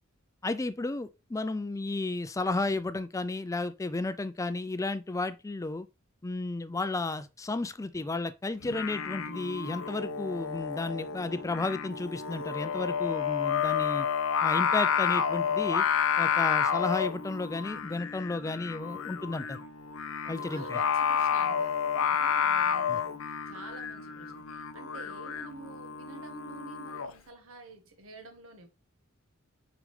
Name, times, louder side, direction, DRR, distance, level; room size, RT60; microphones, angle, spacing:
voice 1, 0.4-5.9 6.2-14.1 14.4-15.8 16.2-19.6 20.3-20.8 22.9-23.0, left 2 dB, 15° left, 0.4 m, -33 dB
Singing, 8.6-27.1, left 7 dB, 85° left, 0.7 m, -30 dB
voice 2, 20.2-28.7, right 2 dB, 85° right, 1.5 m, -49 dB
6.2 x 5.1 x 3.2 m
head